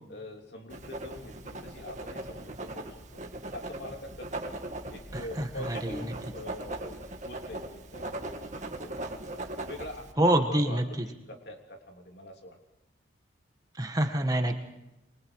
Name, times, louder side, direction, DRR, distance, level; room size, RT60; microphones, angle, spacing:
voice 1, 0.1-3.2 3.5-4.6 4.9-8.9 9.3-12.6, left 1 dB, 60° left, 2 dB, 3.3 m, -44 dB
Writing, 0.7-10.1, right 1 dB, 40° right, 2.1 m, -39 dB
voice 2, 5.1-6.1 10.2-10.8 13.7-14.6, right 1 dB, 20° right, 5 dB, 1.6 m, -26 dB
28.5 x 24.0 x 4.8 m, 0.90 s
head